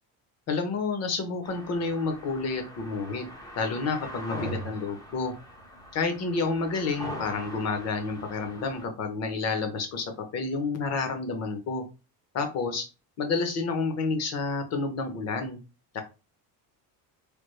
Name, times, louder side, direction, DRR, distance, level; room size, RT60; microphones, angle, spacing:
voice 1, 0.5-3.2 3.5-5.3 5.9-11.8 12.3-12.8 13.2-15.6 15.9-16.0, left 4 dB, 40° left, 6 dB, 0.8 m, -29 dB
sound 1, 1.4-8.9, equal, 10° left, 0.4 m, -42 dB
3.4 x 2.3 x 3.1 m, 0.30 s
cardioid pair, 175°, 41 cm